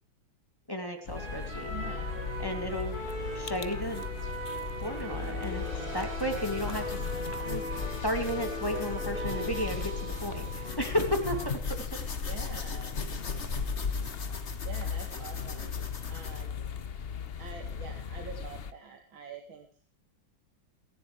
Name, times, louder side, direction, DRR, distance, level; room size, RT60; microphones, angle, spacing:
voice 1, 0.7-1.7 2.4-4.0 4.8-5.7 5.9-7.0 7.4-11.4, equal, 10° left, 4 dB, 2.4 m, -33 dB
sound 1, 1.1-18.7, left 6 dB, 55° left, 0.6 m, -38 dB
sound 2, 1.2-11.5, equal, 25° right, 6.8 m, -38 dB
voice 2, 1.7-2.3 12.2-13.0 14.6-16.8 17.4-19.7, right 6 dB, 75° right, 4 dB, 2.6 m, -46 dB
sound 3, 6.3-16.5, left 4 dB, 35° left, 1.8 m, -40 dB
27.0 x 11.5 x 3.2 m, 0.38 s
omnidirectional pair, 2.2 m